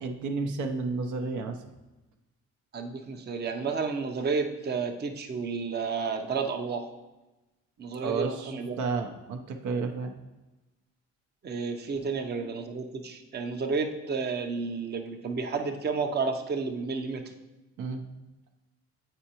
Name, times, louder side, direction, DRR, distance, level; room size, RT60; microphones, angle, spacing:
voice 1, 0.0-1.6 8.0-10.1 17.8-18.0, right 4 dB, 75° right, 4 dB, 0.7 m, -32 dB
voice 2, 2.7-6.9 7.8-8.8 11.4-17.3, right 4 dB, 35° right, 4 dB, 0.6 m, -31 dB
7.9 x 4.6 x 2.9 m, 1.1 s
cardioid pair, 90°, 30 cm